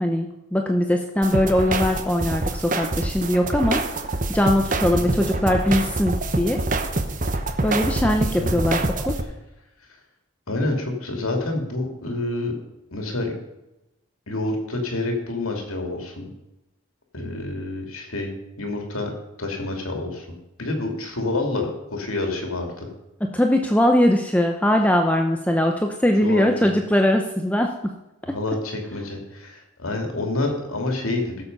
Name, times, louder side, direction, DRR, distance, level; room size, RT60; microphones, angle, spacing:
voice 1, 0.0-3.8 4.3-6.6 7.6-9.2 23.2-27.9, left 1 dB, 5° left, 3 dB, 0.7 m, -21 dB
sound 1, 1.2-9.2, right 2 dB, 40° right, 0.9 m, -26 dB
voice 2, 10.5-12.5 12.9-13.3 14.3-16.3 17.1-19.1 19.4-20.3 20.6-22.9 26.2-26.7 28.2-31.4, left 2 dB, 90° left, 3 dB, 2.8 m, -28 dB
16.5 x 7.1 x 5.4 m, 0.95 s
head